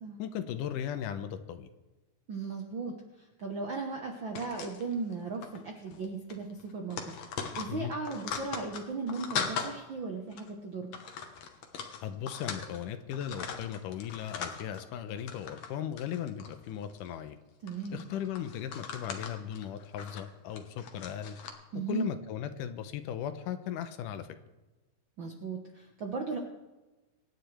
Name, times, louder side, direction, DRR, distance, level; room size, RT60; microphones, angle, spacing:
voice 1, 0.2-1.7 7.7-7.9 12.0-17.4 17.9-21.4 21.9-24.3, left 9 dB, 80° left, 10 dB, 2.3 m, -37 dB
voice 2, 2.3-2.9 3.4-7.0 7.6-11.0 17.6-18.0 21.7-22.1 25.2-26.4, right 4 dB, 65° right, 2 dB, 1.2 m, -36 dB
sound 1, 4.3-5.1 5.4-5.6 5.9-6.1 6.3-9.7 10.3-10.5 10.9-12.8 13.1-14.8 15.2-15.7 16.0-17.1 17.7-21.5, left 6 dB, 65° left, 2.3 m, -39 dB
25.0 x 10.0 x 3.4 m, 1.1 s
omnidirectional pair, 3.8 m